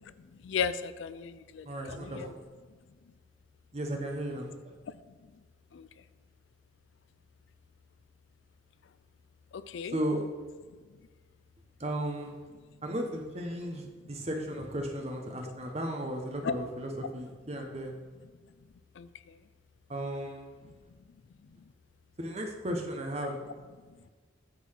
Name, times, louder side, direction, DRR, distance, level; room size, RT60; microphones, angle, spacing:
voice 1, 0.0-2.3 5.7-5.9 9.5-10.0 16.4-16.5 19.0-19.4 20.6-20.7 23.9-24.0, left 6 dB, 70° left, 14 dB, 0.4 m, -36 dB
voice 2, 1.6-2.4 3.7-4.7 9.9-10.2 11.8-12.4 12.8-17.9 19.9-20.5 22.2-23.4, right 1 dB, 30° right, 3 dB, 1.0 m, -35 dB
9.4 x 4.0 x 5.7 m, 1.4 s
head